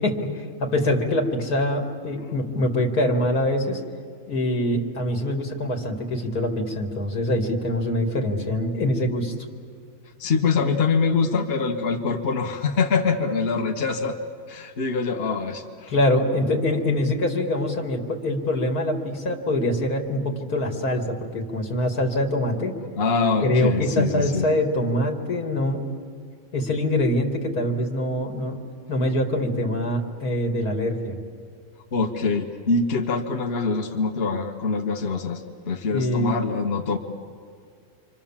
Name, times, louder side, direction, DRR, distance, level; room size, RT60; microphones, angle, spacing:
voice 1, 0.0-3.8 4.3-9.3 15.9-22.7 23.4-25.9 26.5-28.6 28.9-31.2 35.9-36.4, left 1 dB, 80° left, 3 dB, 2.9 m, -24 dB
voice 2, 10.2-14.2 14.5-15.9 23.0-24.5 31.9-37.0, left 4 dB, 45° left, 4 dB, 1.5 m, -24 dB
28.0 x 25.5 x 7.4 m, 2.1 s
omnidirectional pair, 1.6 m